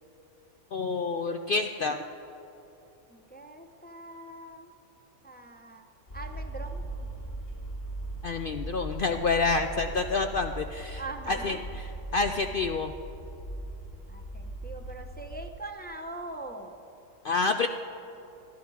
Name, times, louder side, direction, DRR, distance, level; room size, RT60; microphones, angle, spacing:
voice 1, 0.7-2.0 8.2-11.0 11.3-11.6 12.1-12.9 17.2-17.7, left 4 dB, 70° left, 6 dB, 0.5 m, -28 dB
voice 2, 3.1-4.7 5.2-5.9 6.1-6.8 10.9-11.6 14.1-16.7, right 2 dB, 15° left, 4 dB, 0.4 m, -42 dB
sound 1, 6.1-15.5, right 2 dB, 40° left, 2.6 m, -39 dB
21.0 x 12.5 x 4.7 m, 3.0 s
omnidirectional pair, 1.5 m